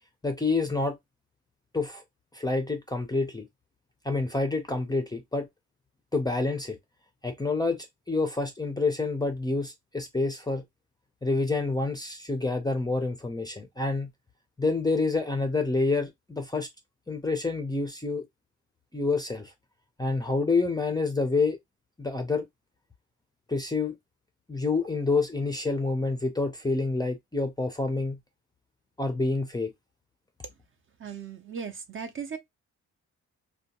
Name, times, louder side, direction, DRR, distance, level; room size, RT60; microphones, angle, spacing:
voice 1, 0.2-1.0 1.7-2.0 2.3-3.5 4.0-5.5 6.1-6.8 7.2-10.6 11.2-14.1 14.6-16.7 17.1-18.2 18.9-19.5 20.0-21.6 22.0-22.5 23.5-23.9 24.5-28.2 29.0-29.7, left 3 dB, 15° left, 0.4 m, -28 dB
voice 2, 31.0-32.4, right 6 dB, 40° right, 0.5 m, -37 dB
2.7 x 2.2 x 2.8 m
wide cardioid pair, 140°, 31 cm